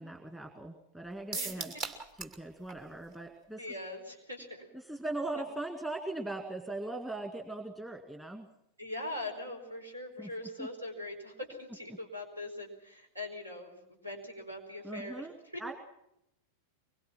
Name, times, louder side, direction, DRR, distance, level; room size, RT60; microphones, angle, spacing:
voice 1, 0.0-1.7 2.2-3.7 4.7-8.5 10.2-10.3 10.6-10.7 14.8-15.3 15.6-15.7, right 2 dB, 10° right, 3 dB, 2.2 m, -39 dB
sound 1, 1.3-2.4 2.7-2.8 3.1-3.2, right 3 dB, 40° right, 2.7 m, -38 dB
voice 2, 3.6-4.7 8.8-15.3 15.5-15.6, left 1 dB, 80° right, 4 dB, 4.9 m, -41 dB
24.0 x 22.5 x 6.0 m, 0.82 s
figure-of-eight pair, 90°, 0 cm